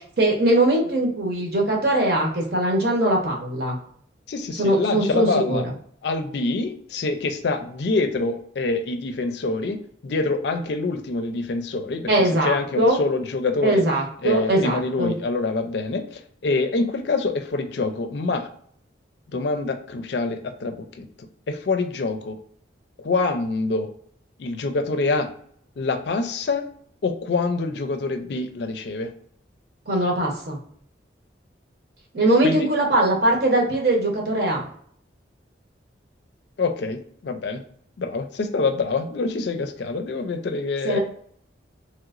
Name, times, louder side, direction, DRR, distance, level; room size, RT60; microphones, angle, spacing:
voice 1, 0.2-3.8 4.6-5.7 12.1-13.0 13.6-15.1 29.9-30.6 32.1-34.7 40.8-41.0, right 1 dB, 60° right, -1 dB, 0.9 m, -21 dB
voice 2, 4.3-5.6 6.0-13.8 14.2-18.5 19.3-21.1 21.5-22.4 23.0-23.9 24.4-25.3 25.8-26.6 27.0-29.1 32.4-32.7 36.6-37.6 38.0-41.0, left 3 dB, 65° left, 8 dB, 0.4 m, -26 dB
3.1 x 2.9 x 2.4 m, 0.63 s
head